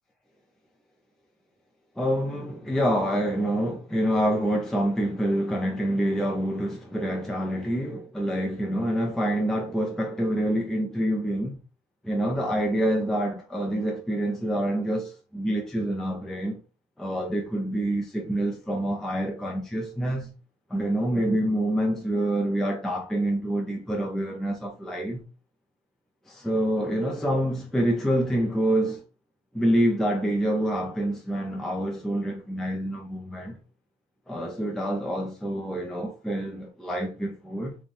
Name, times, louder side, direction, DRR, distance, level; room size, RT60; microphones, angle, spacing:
voice 1, 2.0-11.6 12.0-16.6 17.0-20.3 20.7-25.2 26.3-29.0 29.5-33.6 34.3-37.7, right 1 dB, ahead, 0.5 m, -27 dB
4.0 x 2.3 x 3.1 m
cardioid pair, 145°, 20 cm